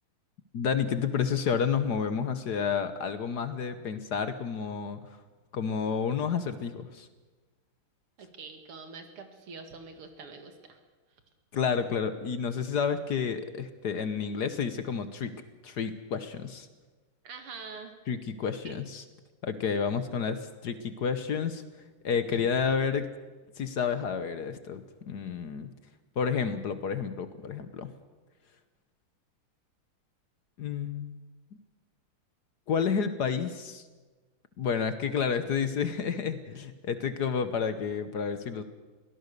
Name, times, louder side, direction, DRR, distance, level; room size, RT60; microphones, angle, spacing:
voice 1, 0.5-5.0 5.5-7.1 11.5-15.3 15.6-16.7 18.1-19.0 19.4-21.6 22.0-23.1 23.6-25.7 26.2-27.9 30.6-31.2 32.7-33.8 34.6-38.6, left 6 dB, 55° left, 11 dB, 1.3 m, -30 dB
voice 2, 8.2-10.8 17.2-18.0 18.6-18.7 22.3-22.5, right 4 dB, 90° right, 6 dB, 3.0 m, -45 dB
23.0 x 17.5 x 6.7 m, 1.3 s
omnidirectional pair, 2.4 m